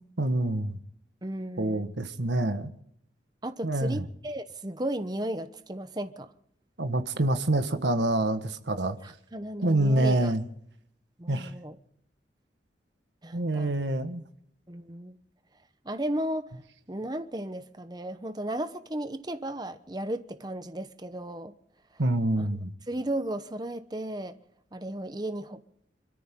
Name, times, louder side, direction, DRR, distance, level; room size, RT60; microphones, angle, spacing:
voice 1, 0.2-0.8 1.6-2.7 3.6-4.0 6.8-9.0 9.6-10.4 11.3-11.5 13.3-14.2 22.0-22.7, right 1 dB, 80° right, 1.5 m, -26 dB
voice 2, 1.2-1.9 3.4-6.3 9.0-10.3 11.2-11.8 13.2-13.7 14.7-15.2 15.8-16.5 16.9-21.5 22.4-22.5 22.9-24.4 24.7-25.6, right 1 dB, 25° right, 0.9 m, -34 dB
27.0 x 14.0 x 3.8 m
head